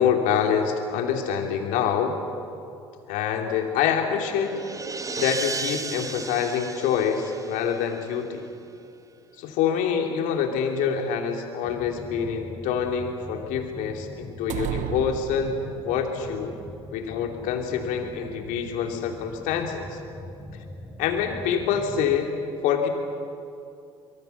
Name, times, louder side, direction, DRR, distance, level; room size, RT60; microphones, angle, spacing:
voice 1, 0.0-2.2 3.1-4.5 5.2-8.5 9.4-16.5 16.9-19.9 21.0-22.3 22.6-22.9, left 7 dB, 65° left, 4 dB, 2.9 m, -26 dB
sound 1, 3.7-8.3, right 4 dB, 25° right, 1.2 m, -35 dB
sound 2, 11.6-22.2, left 1 dB, ahead, 7.9 m, -42 dB
S Spotlight On, 14.5-16.1, right 12 dB, 55° right, 1.0 m, -32 dB
24.5 x 23.0 x 6.9 m, 2.5 s
hypercardioid pair, 65°, 14 cm